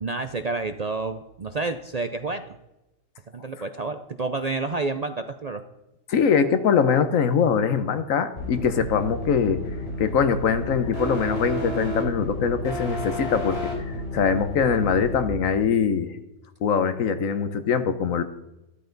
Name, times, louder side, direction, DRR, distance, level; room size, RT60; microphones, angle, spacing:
voice 1, 0.0-2.5 3.3-5.6, right 3 dB, 45° right, 8 dB, 0.5 m, -29 dB
voice 2, 6.1-9.6 10.0-16.1 16.6-18.2, left 6 dB, 80° left, 10 dB, 1.4 m, -23 dB
sound 1, 8.4-15.2, left 1 dB, 50° left, 4.2 m, -31 dB
13.0 x 12.5 x 4.0 m, 0.96 s
omnidirectional pair, 1.4 m